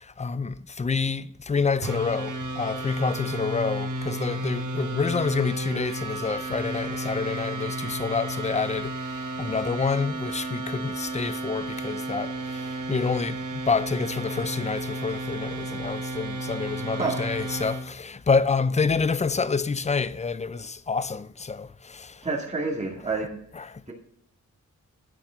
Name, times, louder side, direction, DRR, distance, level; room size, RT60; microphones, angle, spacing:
voice 1, 0.0-22.2 23.6-23.9, left 4 dB, 25° left, 0.5 m, -28 dB
sound 1, 1.8-17.8, right 2 dB, 80° right, 1.4 m, -33 dB
voice 2, 22.2-23.4, right 3 dB, 20° right, 2.1 m, -28 dB
10.0 x 7.2 x 5.1 m
wide cardioid pair, 100°, 30 cm